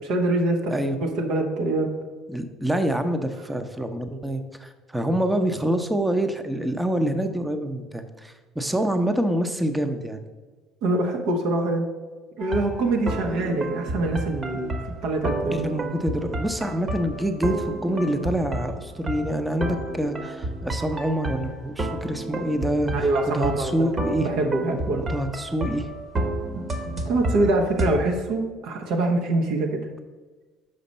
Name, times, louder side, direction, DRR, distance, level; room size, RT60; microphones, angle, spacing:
voice 1, 0.0-0.7 1.0-1.9 10.8-11.9 12.4-15.7 22.9-23.9 24.2-25.0 26.5-29.9, right 2 dB, 70° right, 2 dB, 0.9 m, -24 dB
voice 2, 2.3-10.2 15.5-24.3 25.1-25.9, right 1 dB, 10° right, 8 dB, 0.7 m, -26 dB
sound 1, 12.4-27.9, right 1 dB, 35° right, 1.3 m, -31 dB
6.6 x 5.1 x 4.1 m, 1.3 s
hypercardioid pair, 70°, 0 cm